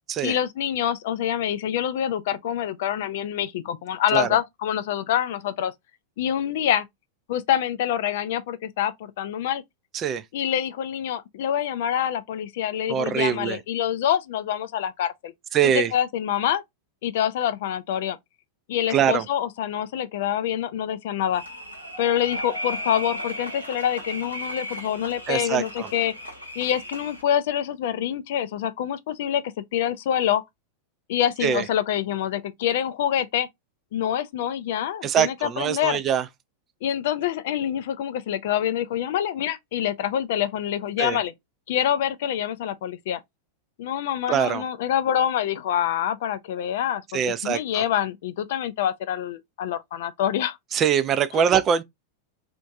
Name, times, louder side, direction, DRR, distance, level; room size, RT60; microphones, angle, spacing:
voice 1, 0.2-5.7 6.2-6.9 7.3-9.6 10.3-15.3 15.7-16.6 17.0-18.2 18.7-21.4 22.0-26.1 26.6-30.4 31.1-33.5 33.9-36.0 36.8-41.3 41.7-43.2 43.8-50.6 51.3-51.4, left 10 dB, 55° left, 0.4 m, -26 dB
voice 2, 12.9-13.6 15.5-15.9 18.9-19.3 25.3-25.9 31.4-31.7 35.0-36.3 41.0-41.2 44.3-44.6 47.1-47.8 50.7-51.8, right 8 dB, 30° right, 0.4 m, -23 dB
sound 1, 21.3-27.2, equal, 90° right, 1.0 m, -36 dB
2.9 x 2.5 x 3.4 m
figure-of-eight pair, 90°, 0 cm